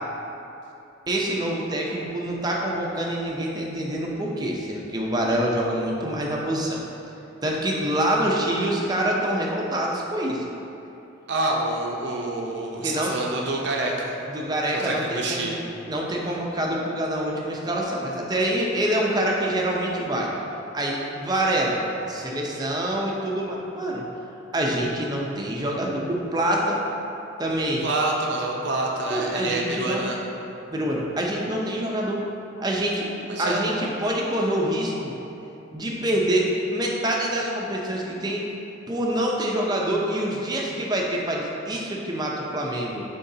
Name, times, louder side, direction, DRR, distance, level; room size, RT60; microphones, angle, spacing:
voice 1, 1.1-6.8 7.4-10.4 12.8-13.1 14.3-15.5 15.9-20.3 20.7-21.8 22.1-24.0 24.5-26.8 27.4-27.8 29.1-30.1 30.7-32.2 32.6-35.1 35.7-38.5 38.9-43.0, right 1 dB, 20° right, -2 dB, 0.6 m, -26 dB
voice 2, 11.3-14.2 14.7-15.6 27.8-30.2 33.3-33.6, right 2 dB, 60° right, -2 dB, 0.6 m, -27 dB
9.3 x 3.8 x 2.7 m, 2.9 s
head